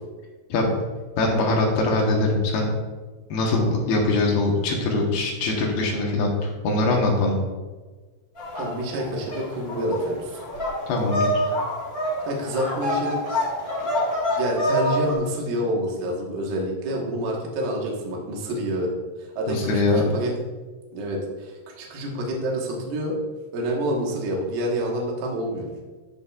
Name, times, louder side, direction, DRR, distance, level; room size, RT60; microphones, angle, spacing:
voice 1, 1.2-2.7 3.3-7.4 10.9-11.3 19.5-20.0, left 2 dB, 70° left, -1 dB, 2.9 m, -22 dB
sound 1, 8.4-15.1, equal, 30° left, 1.7 m, -26 dB
voice 2, 8.6-10.4 12.3-13.2 14.3-18.9 19.2-20.4 20.9-23.3 23.5-25.7, equal, 65° right, -1 dB, 2.8 m, -28 dB
14.0 x 6.2 x 2.4 m, 1.3 s
omnidirectional pair, 5.1 m